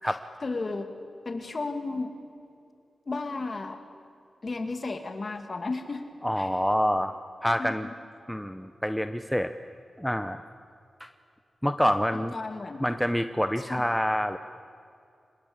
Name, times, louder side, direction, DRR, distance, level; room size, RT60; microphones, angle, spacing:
voice 1, 0.4-0.9 1.3-2.1 3.1-3.8 4.4-6.0 6.4-6.5 7.6-7.9 12.3-12.8 13.7-13.8, left 3 dB, 40° left, 7 dB, 2.4 m, -33 dB
voice 2, 6.2-7.2 7.4-7.9 8.3-9.5 10.0-10.4 11.0-11.1 11.6-12.4 12.8-14.4, equal, 5° left, 9 dB, 0.7 m, -27 dB
25.0 x 20.5 x 8.9 m, 2.5 s
wide cardioid pair, 115°, 0 cm